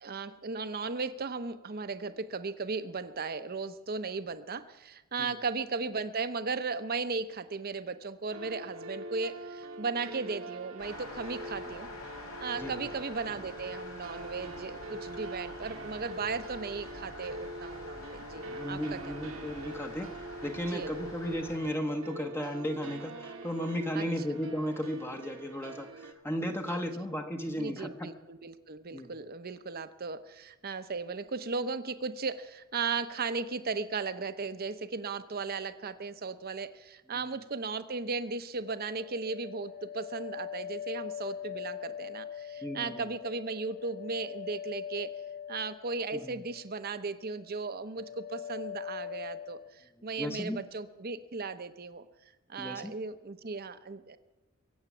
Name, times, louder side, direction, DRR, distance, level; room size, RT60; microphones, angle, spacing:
voice 1, 0.0-11.9 12.4-19.4 20.7-20.9 23.9-24.1 26.7-26.8 27.6-45.1 45.5-52.1 52.5-54.2, right 4 dB, 45° right, 11 dB, 0.8 m, -36 dB
sound 1, 8.3-26.1, right 2 dB, 65° right, 1.3 m, -44 dB
sound 2, 10.8-21.6, left 2 dB, 75° left, 2.6 m, -47 dB
voice 2, 18.5-28.1 28.9-29.1 42.6-43.1 46.1-46.4 50.0-50.6 52.6-52.9, equal, 10° left, 4 dB, 0.9 m, -35 dB
sound 3, 38.6-46.8 47.1-47.6 47.9-49.7, left 9 dB, 45° left, 0.9 m, -42 dB
23.0 x 8.1 x 7.2 m, 1.1 s
head